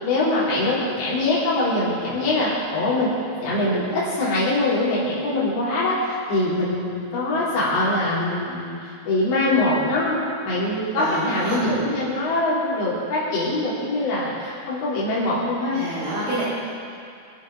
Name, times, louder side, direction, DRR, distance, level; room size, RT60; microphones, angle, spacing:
voice 1, 0.0-3.1 3.4-15.8, left 2 dB, 85° left, -9 dB, 6.5 m, -23 dB
voice 2, 11.0-11.6 15.7-16.4, right 2 dB, 65° right, -9 dB, 4.7 m, -27 dB
25.5 x 9.0 x 5.1 m, 2.4 s
omnidirectional pair, 4.9 m